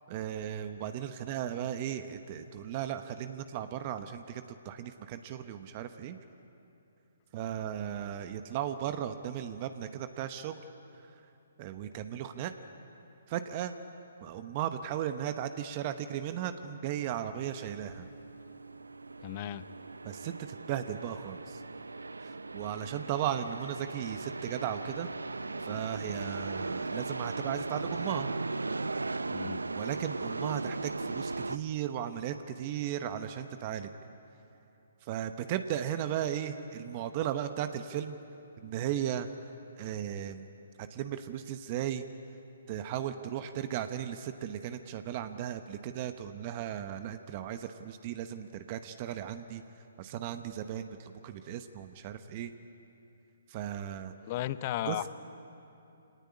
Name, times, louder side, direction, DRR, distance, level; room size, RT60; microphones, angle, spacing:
voice 1, 0.1-6.2 7.3-10.6 11.6-12.5 13.3-13.7 14.2-18.1 20.0-21.6 22.2-25.1 25.6-28.3 29.7-33.9 35.0-38.2 38.6-39.3 39.8-40.5 40.8-42.0 42.7-49.6 50.0-52.5 53.5-54.1 54.8-55.1, right 10 dB, 35° right, 9 dB, 1.0 m, -36 dB
sound 1, 17.4-31.6, right 3 dB, 85° right, 0.6 m, -38 dB
voice 2, 19.2-19.6 29.3-29.6 54.2-55.1, left 13 dB, 40° left, 14 dB, 0.8 m, -34 dB
24.5 x 18.5 x 9.8 m, 2.9 s
figure-of-eight pair, 135°, 0 cm